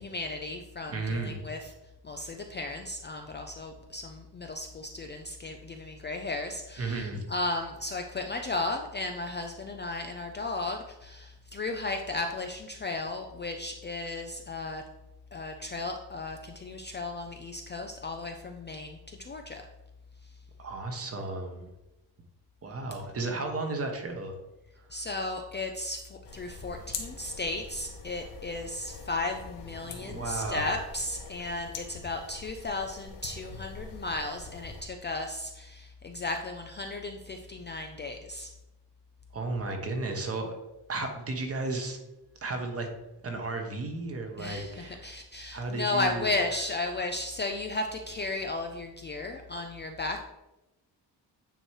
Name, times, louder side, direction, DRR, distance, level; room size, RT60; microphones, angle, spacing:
voice 1, 0.0-1.7 2.0-14.8 15.3-19.6 24.9-38.5 44.4-50.2, left 2 dB, 25° left, 4 dB, 0.4 m, -35 dB
voice 2, 0.9-1.4 6.8-7.2 20.6-21.7 22.6-24.4 24.8-24.9 29.9-30.8 39.3-40.5 40.9-42.0 42.4-42.9 43.2-45.1 45.5-46.2, right 3 dB, 35° right, 4 dB, 1.0 m, -34 dB
sound 1, 26.2-34.8, left 4 dB, 80° left, 1.2 m, -44 dB
9.1 x 3.0 x 4.7 m, 0.98 s
wide cardioid pair, 150°, 42 cm